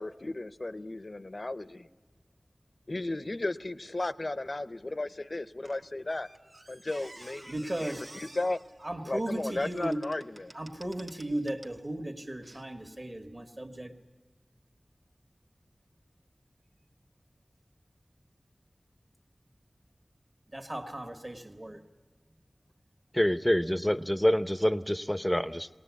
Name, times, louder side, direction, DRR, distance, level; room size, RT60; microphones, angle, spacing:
voice 1, 0.0-1.9 2.9-6.3 6.7-8.6 9.1-10.5, left 2 dB, 55° left, 15 dB, 0.6 m, -35 dB
Squeak, 5.6-11.8 12.4-12.6, right 1 dB, 60° right, 1.3 m, -52 dB
voice 2, 7.5-8.0 8.8-10.0 10.5-13.9 20.5-21.8, right 1 dB, 40° right, 7 dB, 1.7 m, -36 dB
voice 3, 23.1-25.7, equal, 5° left, 13 dB, 0.7 m, -26 dB
21.5 x 19.0 x 8.3 m, 1.4 s
wide cardioid pair, 60°, 0 cm